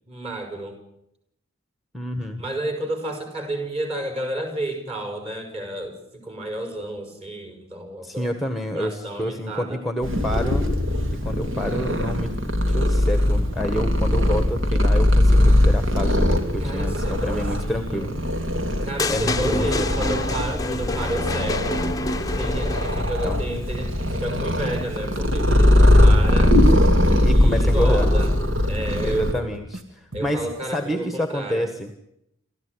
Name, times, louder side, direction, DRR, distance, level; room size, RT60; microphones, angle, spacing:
voice 1, 0.1-0.8 2.2-8.3 8.7-9.8 16.6-18.2 18.8-21.9 22.4-26.6 27.3-28.4 28.6-29.5 30.1-31.7, right 1 dB, 30° right, 6 dB, 5.8 m, -31 dB
voice 2, 1.9-2.4 8.0-10.7 11.1-12.3 12.7-18.1 19.1-20.3 22.9-23.4 27.2-28.1 29.0-31.9, equal, ahead, 7 dB, 1.5 m, -28 dB
Purr, 10.0-29.3, left 1 dB, 65° right, 3.3 m, -20 dB
sound 1, 19.0-23.3, left 3 dB, 15° left, 0.8 m, -28 dB
sound 2, 24.3-25.2 25.5-28.3 28.6-29.8 30.1-30.5, equal, 85° right, 2.2 m, -39 dB
28.5 x 14.0 x 9.8 m, 0.79 s
head